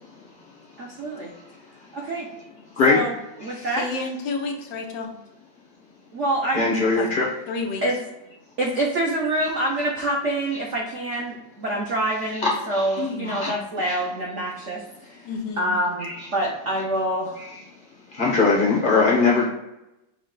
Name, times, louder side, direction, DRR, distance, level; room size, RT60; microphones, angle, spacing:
voice 1, 0.8-1.3 1.9-2.2 2.9-3.2 3.4-3.8 6.1-6.7 7.8-8.0 8.6-15.2 15.6-17.4, right 1 dB, 90° right, -1 dB, 0.6 m, -26 dB
voice 2, 3.6-5.1 7.0-7.1 7.5-7.8 13.0-13.3 15.2-15.7, left 4 dB, 70° left, 2 dB, 1.4 m, -30 dB
voice 3, 6.5-7.3 12.3-13.0 13.3-13.5 13.8-14.0 16.0-16.2 17.4-17.6 18.1-19.5, left 4 dB, 90° left, -4 dB, 0.4 m, -21 dB
6.1 x 2.2 x 3.8 m, 0.92 s
omnidirectional pair, 2.3 m